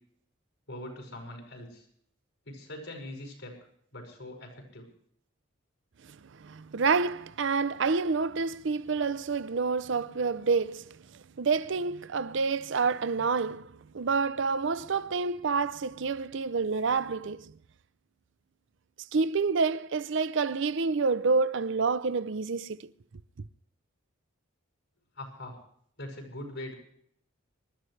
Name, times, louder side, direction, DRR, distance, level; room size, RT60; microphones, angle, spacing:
voice 1, 0.7-1.9 2.5-3.6 3.9-4.9 25.2-25.6 26.0-26.7, left 1 dB, 75° left, 5.6 m, -42 dB
voice 2, 6.1-17.6 19.1-22.9 23.4-23.5, right 4 dB, 60° right, 0.5 m, -28 dB
26.5 x 13.0 x 3.3 m
head